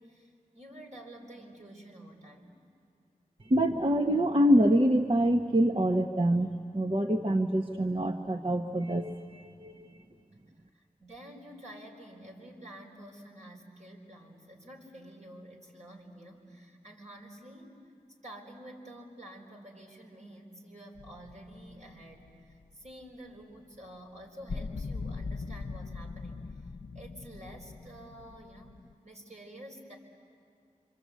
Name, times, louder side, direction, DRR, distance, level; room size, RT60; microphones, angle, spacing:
voice 1, 0.0-2.6 10.7-17.7 18.2-26.6 26.9-30.0, right 1 dB, 55° right, 0 dB, 4.4 m, -49 dB
voice 2, 3.4-9.9, equal, 35° right, 5 dB, 1.0 m, -26 dB
sound 1, 21.0-22.9 24.5-28.9, left 4 dB, 70° left, 0.6 m, -41 dB
26.5 x 25.5 x 8.3 m, 2.4 s
wide cardioid pair, 60°, 15 cm